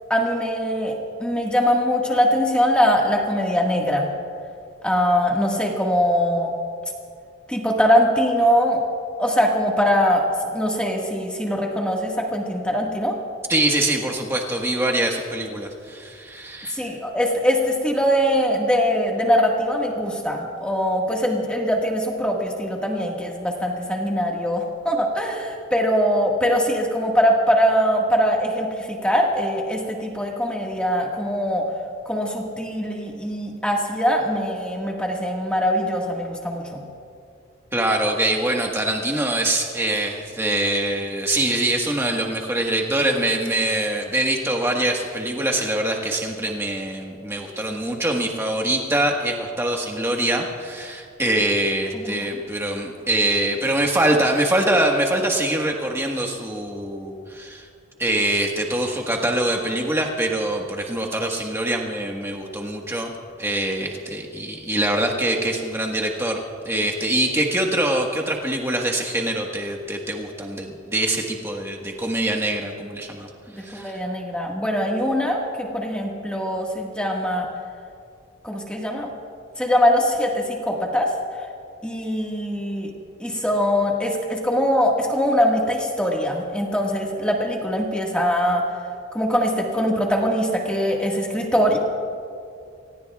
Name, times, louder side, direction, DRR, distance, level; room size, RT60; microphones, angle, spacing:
voice 1, 0.1-0.9 1.2-4.1 4.8-6.6 7.5-8.8 9.2-10.2 10.5-13.1 16.7-31.6 32.0-36.8 52.0-52.1 73.5-77.5 78.4-79.1 79.6-81.1 81.8-82.9 83.2-88.6 89.1-91.8, equal, 5° left, -1 dB, 1.6 m, -22 dB
voice 2, 13.5-16.8 37.7-57.6 58.0-63.1 63.4-66.4 66.6-73.3 73.6-74.0, right 1 dB, 10° right, 1 dB, 1.4 m, -24 dB
26.5 x 18.0 x 2.4 m, 2.3 s
head